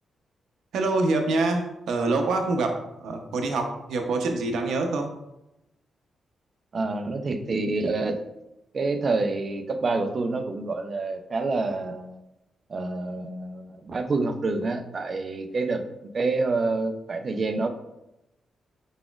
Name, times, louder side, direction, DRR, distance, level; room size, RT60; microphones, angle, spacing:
voice 1, 0.7-5.1, right 3 dB, 85° right, 4 dB, 0.6 m, -25 dB
voice 2, 6.7-8.2 8.7-12.2 12.7-15.8 16.1-17.7, right 3 dB, 40° right, 6 dB, 0.4 m, -27 dB
4.8 x 4.1 x 2.3 m, 0.90 s
wide cardioid pair, 135°, 0 cm